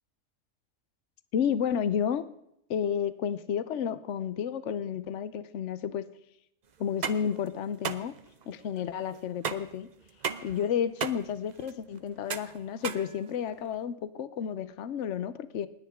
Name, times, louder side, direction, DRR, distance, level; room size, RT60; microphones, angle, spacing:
voice 1, 1.3-2.3 2.7-6.1 6.8-8.1 8.5-9.9 10.4-15.7, left 8 dB, 70° left, 14 dB, 1.1 m, -31 dB
sound 1, 6.8-13.7, right 6 dB, 45° right, 0.6 m, -37 dB
28.0 x 10.0 x 3.6 m, 0.78 s
omnidirectional pair, 1.3 m